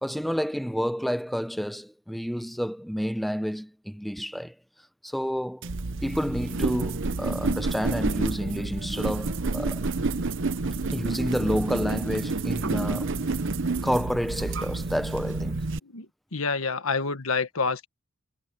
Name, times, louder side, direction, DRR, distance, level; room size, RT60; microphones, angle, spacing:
voice 1, 0.0-4.5 5.0-5.7 6.0-9.9 10.9-13.3 13.8-15.7, equal, ahead, 0.8 m, -29 dB
sound 1, 5.6-15.8, right 3 dB, 65° right, 0.9 m, -29 dB
voice 2, 16.3-17.9, left 4 dB, 80° left, 1.5 m, -27 dB
head